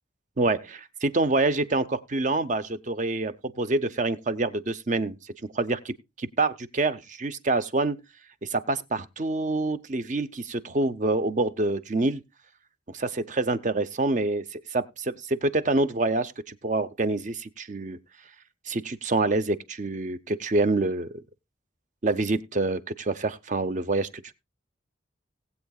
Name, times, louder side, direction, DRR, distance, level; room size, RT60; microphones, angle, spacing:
voice 1, 0.4-8.0 8.4-12.2 12.9-18.0 18.7-21.1 22.0-24.3, right 2 dB, 40° right, 0.7 m, -27 dB
19.0 x 8.2 x 2.3 m
head